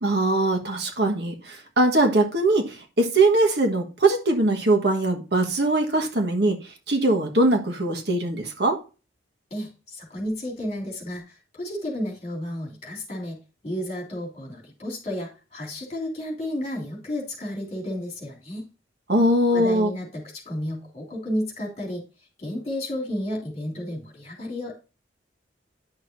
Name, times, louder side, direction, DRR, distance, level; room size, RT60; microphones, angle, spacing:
voice 1, 0.0-8.8 19.1-19.9, right 2 dB, 55° right, 3 dB, 1.4 m, -21 dB
voice 2, 9.5-13.4 13.6-18.6 19.5-22.0 22.4-24.8, left 1 dB, 35° left, -2 dB, 3.1 m, -32 dB
10.5 x 6.3 x 2.6 m, 0.32 s
head